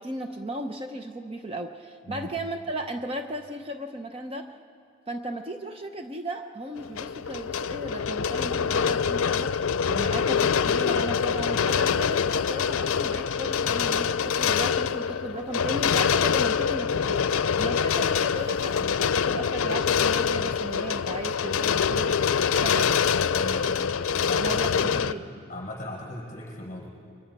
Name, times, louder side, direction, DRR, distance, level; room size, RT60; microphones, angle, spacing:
voice 1, 0.0-4.5 5.1-22.2 22.6-22.9 23.6-23.7 24.1-25.2, right 1 dB, 25° right, 5 dB, 0.7 m, -36 dB
sound 1, 6.8-25.1, left 7 dB, 90° left, 0.5 m, -25 dB
sound 2, 18.4-24.6, left 3 dB, 60° left, 0.8 m, -46 dB
voice 2, 23.3-23.9 24.2-25.1 25.5-26.9, left 1 dB, 35° left, -4 dB, 7.6 m, -38 dB
29.0 x 23.5 x 6.0 m, 2.4 s
head